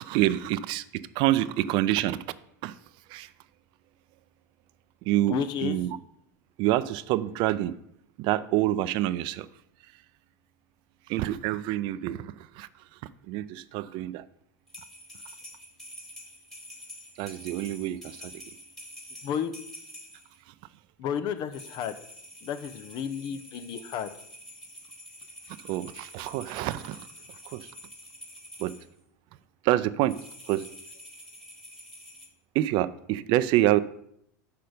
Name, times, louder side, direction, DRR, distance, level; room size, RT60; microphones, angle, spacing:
voice 1, 0.0-2.2 2.6-2.8 3.1-3.3 5.0-6.0 6.6-7.8 8.2-9.5 11.1-13.0 13.3-14.3 17.2-18.4 20.5-20.6 25.5-27.1 27.5-27.7 28.6-28.8 29.6-30.2 30.5-30.7 32.5-33.8, right 14 dB, 55° right, 16 dB, 0.5 m, -27 dB
voice 2, 5.3-5.8 19.2-19.5 21.0-22.0 22.4-24.1, left 8 dB, 50° left, 11 dB, 0.8 m, -32 dB
sound 1, 14.7-20.4 21.5-28.9 30.0-32.3, left 1 dB, 5° left, 1.9 m, -47 dB
6.6 x 5.9 x 5.0 m, 0.71 s
hypercardioid pair, 90°, 10 cm